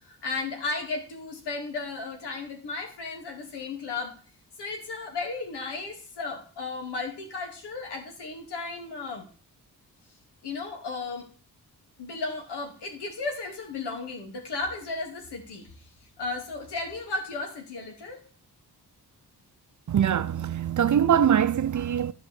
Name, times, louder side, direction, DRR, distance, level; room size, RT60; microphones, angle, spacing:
voice 1, 0.1-4.1 4.6-9.2 10.4-11.2 12.0-15.7 16.2-18.2, left 3 dB, 90° left, 2.6 m, -34 dB
voice 2, 19.9-22.1, right 9 dB, 50° right, 0.6 m, -23 dB
10.5 x 5.0 x 6.9 m
cardioid pair, 60°, 39 cm